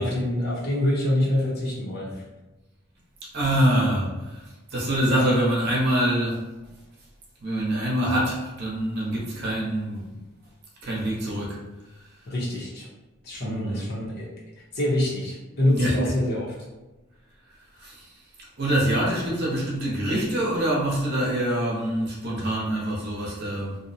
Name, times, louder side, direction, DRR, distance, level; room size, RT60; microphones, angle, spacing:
voice 1, 0.0-2.2 12.3-12.9 13.2-14.3 14.7-16.5, left 1 dB, 50° left, -5 dB, 0.7 m, -25 dB
voice 2, 3.2-6.4 7.4-10.1 10.8-11.6 12.0-12.2 13.4-13.9 15.7-16.1 17.8-23.8, right 1 dB, 50° right, -4 dB, 0.7 m, -25 dB
2.6 x 2.0 x 2.7 m, 1.1 s
head